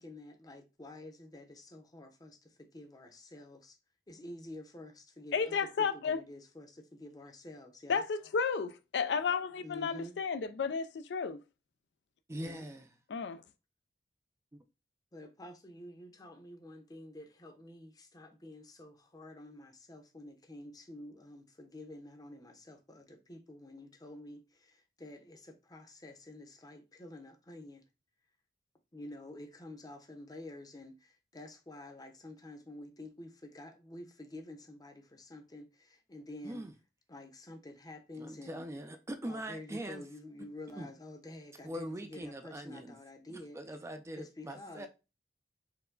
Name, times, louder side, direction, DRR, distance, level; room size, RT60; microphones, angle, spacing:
voice 1, 0.0-3.8 4.1-8.0 9.6-10.1 12.4-12.6 15.1-27.8 28.9-36.6 37.1-38.7 39.2-43.6 44.1-44.9, left 1 dB, 20° left, 0.7 m, -49 dB
voice 2, 5.3-6.2 7.9-11.4 13.1-13.4, left 5 dB, 75° left, 0.4 m, -32 dB
voice 3, 12.3-12.9 14.5-14.6 36.4-36.7 38.2-40.0 40.4-40.9 41.6-43.0 43.3-44.9, right 1 dB, 15° right, 0.4 m, -42 dB
4.5 x 2.2 x 3.7 m
head